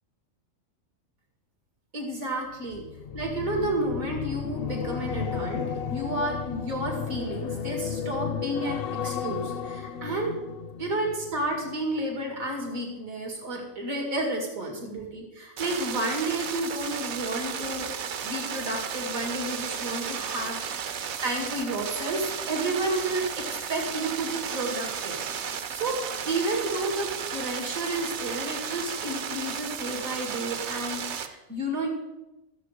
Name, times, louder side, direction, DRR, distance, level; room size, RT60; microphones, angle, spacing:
voice 1, 1.9-2.9 3.1-10.4 10.8-17.9 18.2-20.6 21.2-25.2 25.4-26.0 26.2-31.9, right 1 dB, 85° right, 0 dB, 2.7 m, -31 dB
sound 1, 2.7-12.0 12.4-12.7, left 7 dB, 60° left, 0.6 m, -34 dB
sound 2, 15.6-31.3, right 7 dB, 60° right, 1.0 m, -34 dB
13.5 x 7.4 x 5.0 m, 1.0 s
omnidirectional pair, 1.4 m